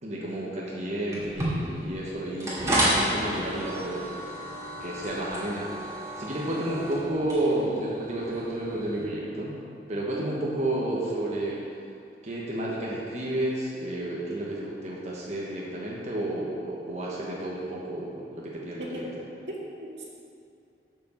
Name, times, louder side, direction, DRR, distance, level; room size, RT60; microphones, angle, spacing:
voice 1, 0.0-4.0 4.8-9.6 9.9-11.6 12.2-19.1, right 1 dB, 40° right, -5 dB, 1.2 m, -31 dB
sound 1, 1.1-9.0, right 1 dB, 20° right, 2.2 m, -31 dB
voice 2, 18.8-19.1 19.5-20.0, equal, 85° right, -4 dB, 2.0 m, -37 dB
7.1 x 6.1 x 7.1 m, 2.5 s
head